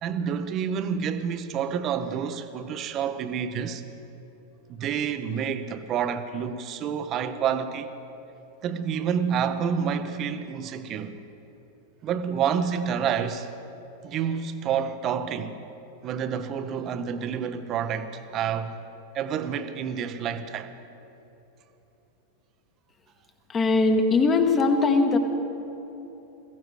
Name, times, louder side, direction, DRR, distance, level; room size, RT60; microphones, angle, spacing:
voice 1, 0.0-3.8 4.7-7.9 8.6-11.2 12.0-13.5 14.0-15.6 16.0-18.8 19.1-20.7, right 7 dB, 35° right, 0.8 m, -28 dB
voice 2, 23.5-25.2, left 3 dB, 25° left, 1.2 m, -20 dB
21.0 x 15.5 x 3.2 m
figure-of-eight pair, 90°, 0 cm